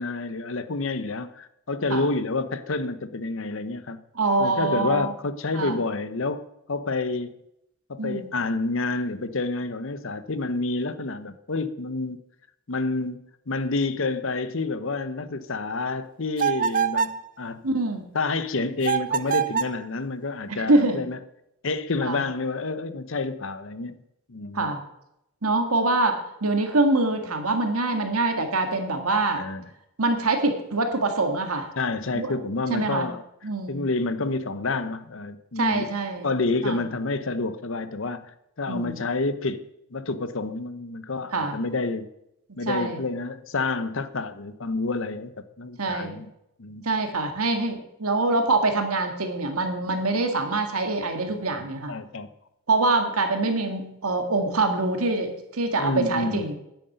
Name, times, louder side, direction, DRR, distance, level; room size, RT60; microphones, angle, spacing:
voice 1, 0.0-4.0 4.4-7.3 7.9-12.2 12.7-17.7 18.1-21.2 21.6-24.0 24.3-24.7 29.3-29.7 31.8-33.2 33.7-35.9 36.2-39.6 39.9-42.1 42.6-45.3 45.6-46.3 46.6-46.8 51.3-52.3 55.8-56.4, left 3 dB, 60° left, 12 dB, 0.8 m, -29 dB
voice 2, 4.2-5.1 5.5-5.8 8.0-8.3 17.6-18.0 20.5-21.0 22.0-22.2 24.5-24.8 25.4-29.4 30.0-31.7 32.1-32.3 32.7-33.1 33.4-33.8 35.6-36.3 36.6-36.8 38.7-39.0 41.3-41.6 42.5-43.0 45.8-46.2 46.8-51.9 52.7-56.5, right 2 dB, 85° right, 5 dB, 1.9 m, -24 dB
sound 1, 16.4-17.2 18.8-19.8, right 7 dB, 40° right, 0.4 m, -25 dB
9.8 x 7.9 x 7.9 m, 0.82 s
head